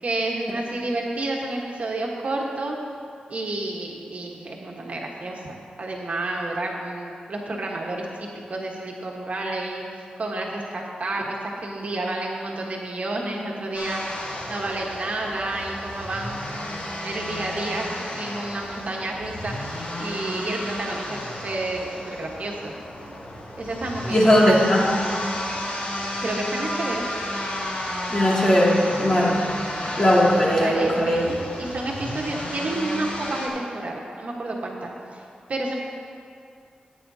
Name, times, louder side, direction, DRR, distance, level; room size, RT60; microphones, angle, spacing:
voice 1, 0.0-2.8 3.3-14.0 14.5-22.7 23.0-23.1 23.6-24.6 26.2-27.0 28.7-29.2 29.8-29.9 30.4-35.2 35.5-35.7, right 2 dB, 55° right, -1 dB, 1.3 m, -30 dB
sound 1, 13.7-33.5, left 1 dB, 60° left, 2.2 m, -32 dB
voice 2, 24.1-24.8 28.1-29.3 30.0-31.2, equal, 25° left, -5 dB, 2.4 m, -18 dB
15.0 x 9.0 x 2.8 m, 2.3 s
cardioid pair, 80°, 3 cm